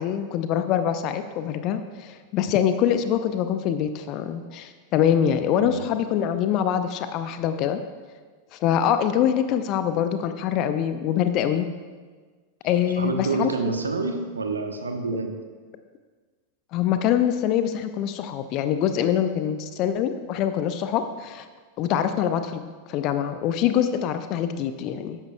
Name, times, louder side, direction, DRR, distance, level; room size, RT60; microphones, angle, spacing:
voice 1, 0.0-7.8 8.5-11.7 12.6-13.5 16.7-21.5 21.8-22.6 22.9-25.2, left 9 dB, 40° left, 9 dB, 0.5 m, -24 dB
voice 2, 5.5-5.9 13.0-15.3, right 3 dB, 75° right, 5 dB, 1.0 m, -28 dB
14.0 x 10.0 x 2.3 m, 1.5 s
figure-of-eight pair, 90°, 0 cm